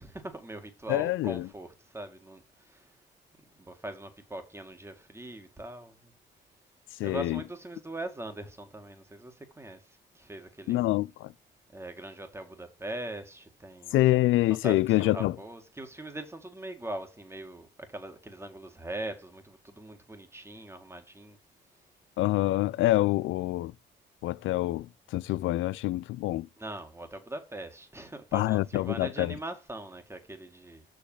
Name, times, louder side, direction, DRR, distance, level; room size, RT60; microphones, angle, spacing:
voice 1, 0.0-2.9 3.4-6.1 7.0-10.9 11.7-14.0 14.5-21.4 26.6-30.8, right 1 dB, 15° right, 1.8 m, -41 dB
voice 2, 0.9-1.5 7.0-7.4 10.7-11.3 13.9-15.3 22.2-23.7 24.2-26.5 28.3-29.3, left 16 dB, 80° left, 0.5 m, -26 dB
6.3 x 5.1 x 5.5 m
cardioid pair, 90°, 20 cm